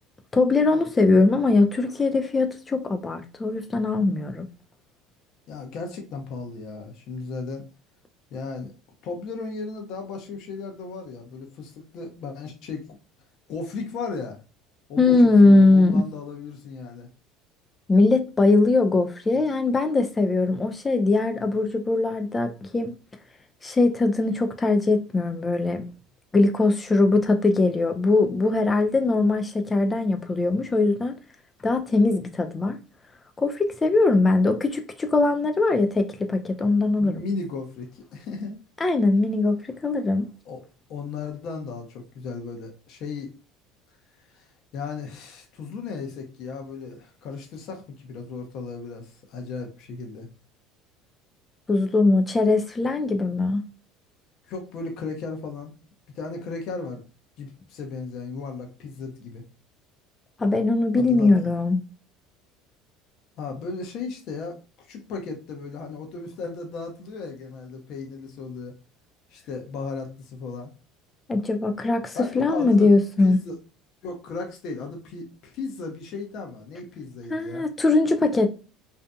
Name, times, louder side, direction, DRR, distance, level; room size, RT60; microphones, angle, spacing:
voice 1, 0.3-4.5 15.0-16.0 17.9-22.9 23.6-25.8 26.3-31.2 31.6-32.8 33.4-37.2 38.8-40.3 51.7-53.6 60.4-61.8 71.3-73.4 77.3-78.5, left 3 dB, 20° left, 0.4 m, -21 dB
voice 2, 5.5-7.6 8.3-8.7 9.0-12.8 13.5-14.4 14.9-17.1 37.0-38.6 40.5-40.6 40.9-43.3 44.3-44.5 44.7-50.3 54.5-55.7 56.1-57.0 57.4-59.4 61.0-61.5 63.4-68.7 69.3-70.7 72.1-72.9 73.2-73.6 74.0-77.6, left 4 dB, 60° left, 0.7 m, -35 dB
2.6 x 2.4 x 2.2 m
supercardioid pair, 90°, 0 cm